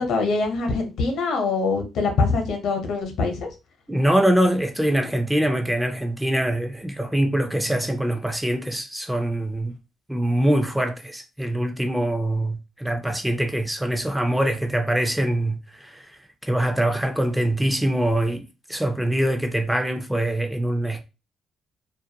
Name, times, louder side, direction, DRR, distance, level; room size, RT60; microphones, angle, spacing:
voice 1, 0.0-3.5, left 4 dB, 75° left, 0.7 m, -24 dB
voice 2, 3.9-9.8 10.1-15.6 15.9-16.0 16.5-18.4 18.7-21.0, right 1 dB, 5° right, 0.4 m, -23 dB
2.4 x 2.2 x 2.7 m
cardioid pair, 90°, 0 cm